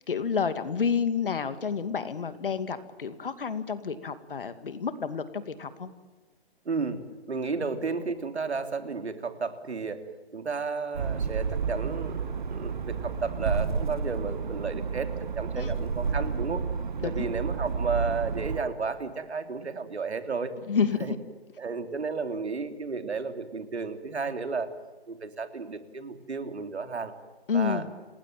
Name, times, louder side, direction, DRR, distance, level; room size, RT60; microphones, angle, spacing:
voice 1, 0.1-5.9 15.6-15.7 17.0-17.3 20.7-21.0 27.5-27.9, left 6 dB, 55° left, 11 dB, 2.4 m, -29 dB
voice 2, 6.7-10.0 10.3-15.1 15.4-16.6 17.0-20.5 21.0-21.1 21.6-24.7 25.1-27.1 27.5-27.8, right 4 dB, 80° right, 8 dB, 3.4 m, -33 dB
sound 1, 10.9-18.6, right 5 dB, 45° right, 1.7 m, -31 dB
29.0 x 19.0 x 9.0 m, 1.3 s
hypercardioid pair, 170°, 32 cm